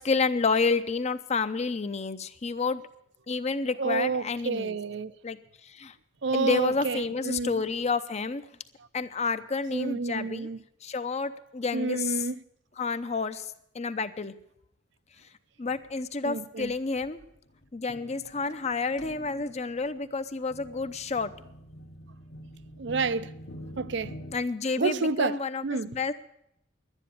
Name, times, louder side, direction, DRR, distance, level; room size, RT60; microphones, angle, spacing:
voice 1, 0.0-2.8 3.3-4.8 5.2-5.4 5.6-5.9 6.3-8.4 8.9-10.5 10.8-12.2 12.8-13.5 13.7-14.3 15.6-17.2 17.7-21.3 24.3-26.1, left 4 dB, 35° left, 0.6 m, -29 dB
voice 2, 3.8-5.1 6.2-7.6 9.7-10.6 11.7-12.4 16.2-16.7 22.8-23.3 23.8-24.2 24.8-26.0, right 4 dB, 65° right, 0.6 m, -29 dB
sound 1, 15.7-16.0 16.6-16.8 17.0-24.4, equal, 60° left, 1.1 m, -46 dB
12.0 x 9.9 x 8.5 m
head